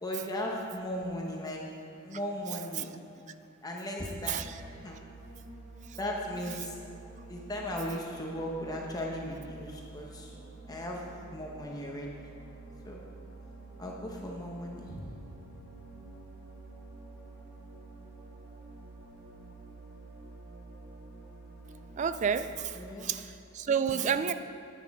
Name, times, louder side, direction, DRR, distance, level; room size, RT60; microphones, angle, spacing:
voice 1, 0.0-1.6 2.0-2.9 3.6-4.4 4.8-5.0 6.0-6.8 7.3-10.4 10.7-12.3 12.8-13.0 13.8-15.2 22.7-23.2 23.7-24.1, left 1 dB, 20° left, -1 dB, 0.9 m, -37 dB
sound 1, 4.3-22.6, right 2 dB, 90° right, 1.8 m, -49 dB
voice 2, 22.0-24.3, right 7 dB, 35° right, 12 dB, 0.3 m, -30 dB
10.5 x 9.2 x 3.6 m, 2.7 s
head